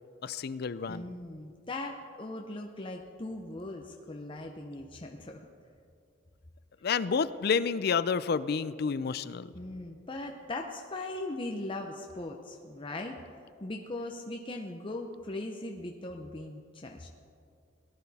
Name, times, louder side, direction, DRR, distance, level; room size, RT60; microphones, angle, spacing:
voice 1, 0.2-1.1 6.8-9.5, left 5 dB, 55° left, 15 dB, 0.4 m, -29 dB
voice 2, 0.9-5.5 9.5-13.2 13.6-17.1, left 2 dB, 25° left, 2 dB, 0.7 m, -39 dB
18.5 x 11.5 x 4.2 m, 2.3 s
head